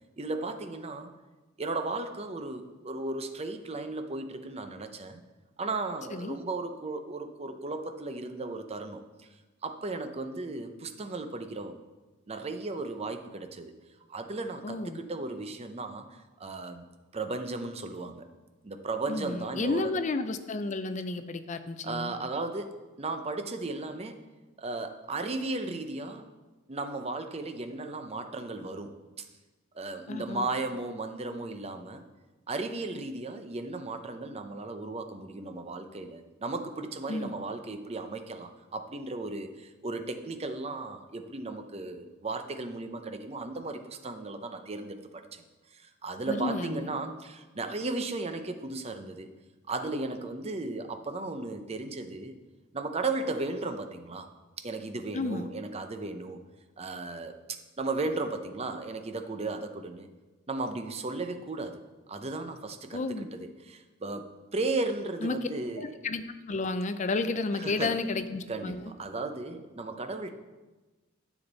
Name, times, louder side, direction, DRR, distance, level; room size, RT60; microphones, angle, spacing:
voice 1, 0.2-1.1 1.6-5.2 5.6-9.3 9.6-11.8 12.3-13.7 14.1-16.8 17.1-18.3 18.6-20.0 21.8-24.2 24.6-26.2 26.7-29.2 29.7-32.0 32.5-45.4 45.7-49.3 49.7-52.4 52.7-54.3 54.6-56.4 56.8-60.1 60.5-61.8 62.1-65.9 67.5-68.0 68.5-70.3, right 3 dB, 30° right, 7 dB, 0.7 m, -35 dB
voice 2, 14.6-15.0 19.1-22.1 30.1-30.5 37.1-37.3 46.3-46.9 55.1-55.5 62.9-63.3 65.2-65.4 65.8-68.8, left 3 dB, 35° left, 10 dB, 0.5 m, -32 dB
9.9 x 7.2 x 4.0 m, 1.2 s
head